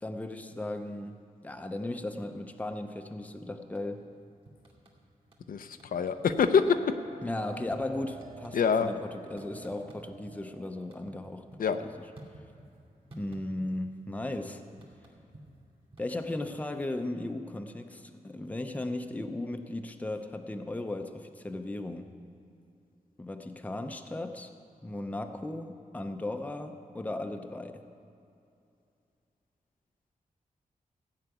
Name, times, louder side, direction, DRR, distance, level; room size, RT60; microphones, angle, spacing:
voice 1, 0.0-4.1 7.2-11.5 11.8-11.9 13.1-14.6 16.0-22.1 23.2-24.5 24.8-27.8, left 1 dB, 10° left, 6 dB, 0.7 m, -36 dB
sound 1, 3.6-4.1 4.5-5.5 5.8-6.3 6.5-10.4 10.7-12.8 13.1-14.0 14.2-17.1, right 1 dB, 40° right, 2.6 m, -53 dB
voice 2, 5.5-6.8 8.5-8.9 11.6-11.8, left 6 dB, 80° left, 8 dB, 0.6 m, -25 dB
Bell, 6.6-11.6, right 4 dB, 60° right, 2.6 m, -50 dB
15.5 x 5.8 x 9.2 m, 2.6 s
wide cardioid pair, 150°, 14 cm